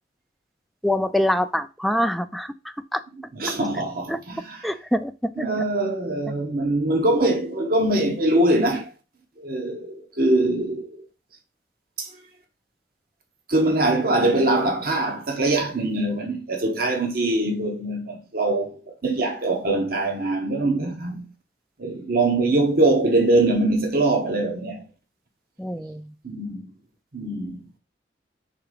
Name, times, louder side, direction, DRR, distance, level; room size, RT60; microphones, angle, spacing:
voice 1, 0.8-2.5 2.9-3.0 4.1-4.2 4.6-5.4 25.6-26.0, left 1 dB, ahead, 0.4 m, -24 dB
voice 2, 3.3-4.6 5.4-8.9 9.4-10.9 12.0-12.1 13.5-21.3 21.8-24.8 26.2-26.7 27.1-27.6, right 2 dB, 55° right, 1.1 m, -23 dB
5.9 x 3.7 x 4.9 m
head